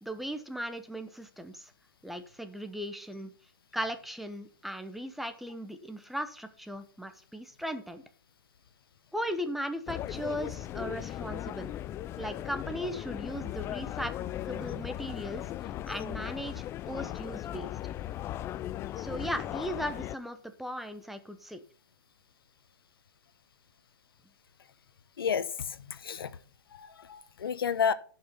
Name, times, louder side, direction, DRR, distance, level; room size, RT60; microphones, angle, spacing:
voice 1, 0.0-1.7 2.0-3.3 3.7-8.0 9.1-11.7 12.2-15.4 15.9-17.7 19.0-21.6, equal, ahead, 0.9 m, -37 dB
sound 1, 9.9-20.2, left 13 dB, 20° left, 0.3 m, -37 dB
voice 2, 26.7-27.9, left 7 dB, 80° left, 0.8 m, -30 dB
11.0 x 5.7 x 5.7 m
hypercardioid pair, 130°, 12 cm